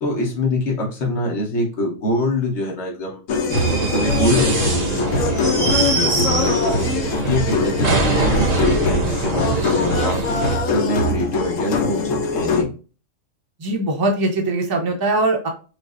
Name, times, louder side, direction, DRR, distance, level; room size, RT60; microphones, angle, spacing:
voice 1, 0.0-3.2 3.7-6.9 7.2-10.2 10.7-12.7, left 1 dB, 65° left, -2 dB, 1.4 m, -24 dB
sound 1, 3.3-12.6, left 3 dB, 80° left, 1.0 m, -22 dB
sound 2, 3.5-10.6, right 3 dB, 75° right, 1.4 m, -23 dB
voice 2, 13.6-15.5, right 2 dB, 25° right, 1 dB, 0.6 m, -21 dB
5.2 x 2.1 x 2.5 m, 0.35 s
omnidirectional pair, 1.3 m